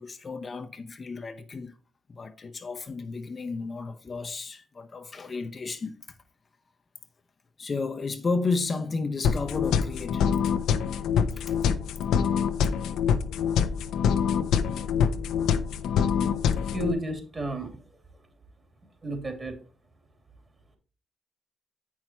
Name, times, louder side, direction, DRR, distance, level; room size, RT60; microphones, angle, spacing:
voice 1, 0.0-1.7 2.1-6.0 7.6-10.3 11.3-11.6, left 4 dB, 35° left, 0.8 m, -32 dB
sound 1, 9.2-16.9, left 7 dB, 80° left, 0.7 m, -25 dB
voice 2, 16.7-17.8 19.0-19.6, right 2 dB, 30° right, 2.7 m, -32 dB
8.3 x 6.1 x 4.4 m
cardioid pair, 90°, 0 cm